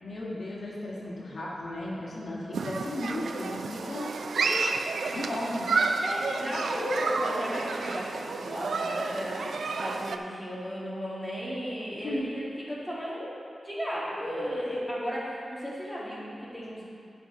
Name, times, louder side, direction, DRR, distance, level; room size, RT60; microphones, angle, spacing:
voice 1, 0.0-4.6 5.1-5.8 12.0-12.3, left 1 dB, 60° left, -6 dB, 1.7 m, -35 dB
Human group actions, 2.5-10.2, right 4 dB, 85° right, 0.4 m, -30 dB
voice 2, 6.0-13.3 13.6-16.8, equal, ahead, -8 dB, 2.2 m, -34 dB
13.0 x 5.4 x 3.9 m, 2.4 s
wide cardioid pair, 110°, 0 cm